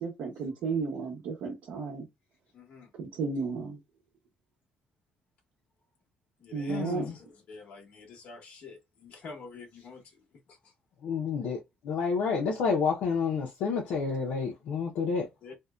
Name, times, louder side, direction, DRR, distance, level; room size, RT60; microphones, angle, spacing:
voice 1, 0.0-2.1 2.9-3.8 6.5-7.1, right 4 dB, 80° right, 0.9 m, -33 dB
voice 2, 2.5-2.9 6.4-10.7 15.4-15.5, left 4 dB, 55° left, 1.1 m, -48 dB
voice 3, 6.7-7.1 11.0-11.6 11.8-15.3, left 5 dB, 85° left, 0.6 m, -29 dB
2.7 x 2.1 x 2.3 m
cardioid pair, 155°, 3 cm